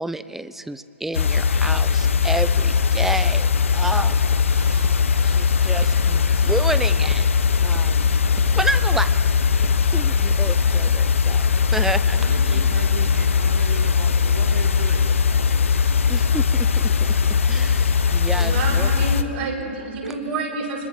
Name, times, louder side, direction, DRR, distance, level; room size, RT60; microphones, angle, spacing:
voice 1, 0.0-4.2 5.2-7.3 7.6-8.2 8.6-9.1 9.9-12.2 12.4-12.6 16.1-18.9, right 2 dB, 5° right, 13 dB, 0.7 m, -30 dB
sound 1, 1.1-19.2, left 6 dB, 85° left, 1.1 m, -19 dB
Walk footsteps, 2.9-11.0, right 8 dB, 35° right, 1.6 m, -38 dB
voice 2, 12.1-15.1 18.7-19.0 19.4-19.7 20.0-20.1, right 5 dB, 75° right, 3 dB, 3.0 m, -36 dB
voice 3, 18.4-20.8, right 3 dB, 55° right, -1 dB, 6.0 m, -28 dB
24.5 x 21.5 x 6.4 m, 2.8 s
hypercardioid pair, 130°, 7 cm